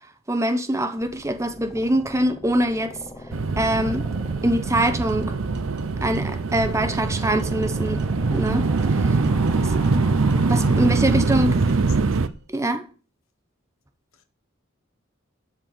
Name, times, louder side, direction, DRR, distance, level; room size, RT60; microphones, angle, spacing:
voice 1, 0.3-3.0 3.6-4.1 4.4-5.4 6.0-8.0 8.3-9.2 9.6-9.7 10.5-11.6 12.5-12.8, right 1 dB, 15° right, 0.9 m, -24 dB
sound 1, 1.0-11.9, left 1 dB, 20° left, 1.0 m, -42 dB
sound 2, 3.3-12.3, right 3 dB, 75° right, 0.6 m, -23 dB
sound 3, 5.1-12.5, right 1 dB, 55° right, 1.2 m, -45 dB
voice 2, 9.4-9.8 11.5-12.4 14.1-14.2, left 4 dB, 85° left, 1.5 m, -46 dB
12.5 x 4.5 x 7.7 m
head